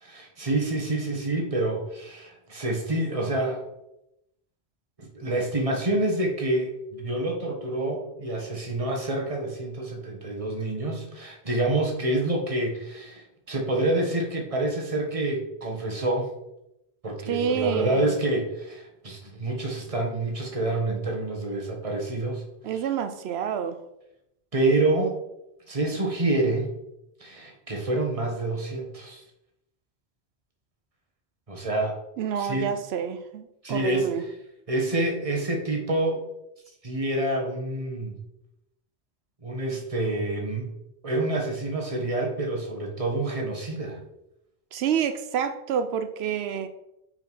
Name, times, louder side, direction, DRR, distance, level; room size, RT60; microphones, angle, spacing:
voice 1, 0.0-3.7 5.0-16.3 17.0-22.4 22.7-22.8 24.5-25.2 25.7-26.7 27.2-29.2 31.5-32.0 32.4-32.7 33.6-34.1 34.7-36.3 36.8-38.2 39.4-40.7 41.0-44.0, right 2 dB, 35° right, 1.4 m, -27 dB
voice 2, 17.3-18.1 22.6-23.8 32.2-34.2 44.7-46.7, right 8 dB, 85° right, 0.8 m, -28 dB
5.1 x 5.0 x 5.5 m
omnidirectional pair, 1.0 m